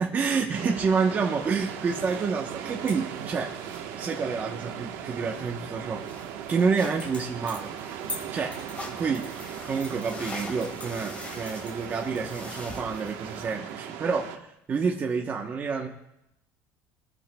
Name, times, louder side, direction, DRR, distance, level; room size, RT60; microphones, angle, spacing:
voice 1, 0.0-3.5 4.0-6.0 6.5-7.7 8.3-8.6 8.9-9.3 9.6-15.9, right 5 dB, 25° right, 0 dB, 1.0 m, -28 dB
sound 1, 0.5-14.4, right 9 dB, 80° right, 1.2 m, -38 dB
sound 2, 1.4-13.5, left 2 dB, 20° left, 2.3 m, -44 dB
21.0 x 13.5 x 2.3 m, 0.85 s
cardioid pair, 155°, 7 cm